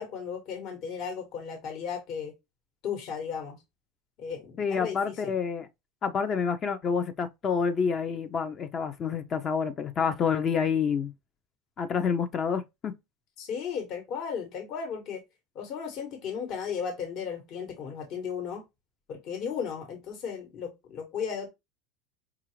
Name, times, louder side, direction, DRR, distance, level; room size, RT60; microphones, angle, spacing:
voice 1, 0.0-2.3 2.8-3.6 4.2-5.4 13.4-15.2 15.5-18.6 19.1-21.5, left 7 dB, 55° left, 1.2 m, -35 dB
voice 2, 4.6-5.7 6.0-11.1 11.8-13.0, left 6 dB, 35° left, 0.5 m, -28 dB
4.8 x 2.4 x 3.0 m
supercardioid pair, 115°, 0 cm